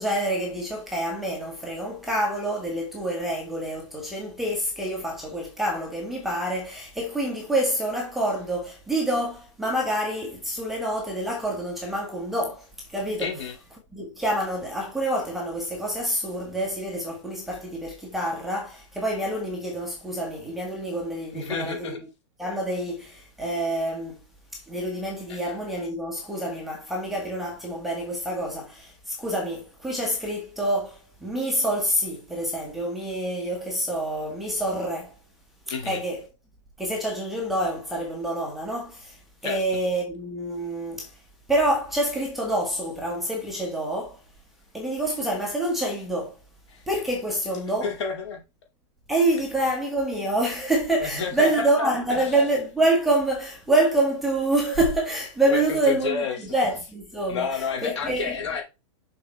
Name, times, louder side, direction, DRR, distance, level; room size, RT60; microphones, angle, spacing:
voice 1, 0.0-13.3 13.9-21.9 22.4-24.2 24.5-35.1 35.8-36.2 36.8-41.2 41.5-44.2 44.7-46.4 46.9-47.9 49.1-56.2 56.5-58.4, right 1 dB, ahead, 1.3 m, -27 dB
voice 2, 13.2-13.6 21.3-22.0 25.3-25.4 35.7-36.0 39.4-39.6 46.7-46.9 47.8-48.4 51.0-51.9 52.2-52.3 55.5-56.4 57.3-58.6, left 5 dB, 60° left, 2.5 m, -30 dB
6.6 x 4.5 x 4.2 m
supercardioid pair, 175°, 17 cm